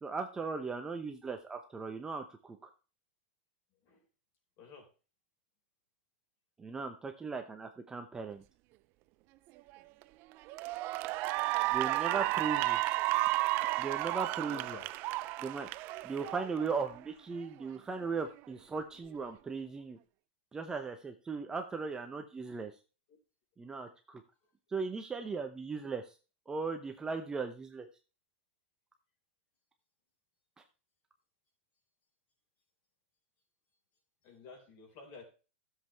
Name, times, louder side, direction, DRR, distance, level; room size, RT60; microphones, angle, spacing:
voice 1, 0.0-2.7 6.6-8.4 11.7-12.8 13.8-14.8 15.4-15.7 16.0-20.0 20.5-22.7 23.6-24.2 24.7-26.0 26.5-27.9, right 4 dB, 10° right, 5 dB, 0.8 m, -38 dB
voice 2, 4.6-4.9 12.1-12.8 14.5-14.9 23.1-23.2 34.2-35.2, left 5 dB, 40° left, 2 dB, 4.4 m, -52 dB
Cheering / Applause, 9.7-10.0 10.5-17.0, right 19 dB, 35° right, 0.5 m, -32 dB
13.0 x 7.6 x 3.4 m, 0.34 s
supercardioid pair, 150°, 6 cm